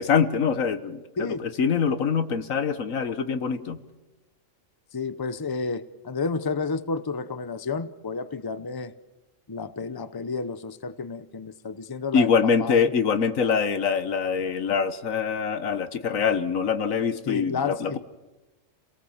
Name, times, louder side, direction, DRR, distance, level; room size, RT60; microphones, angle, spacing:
voice 1, 0.0-3.8 12.1-18.0, left 6 dB, 85° left, 11 dB, 1.6 m, -24 dB
voice 2, 4.9-8.9 9.5-12.9 17.3-18.0, left 4 dB, 20° left, 13 dB, 0.7 m, -31 dB
29.0 x 18.5 x 7.3 m, 1.1 s
omnidirectional pair, 1.4 m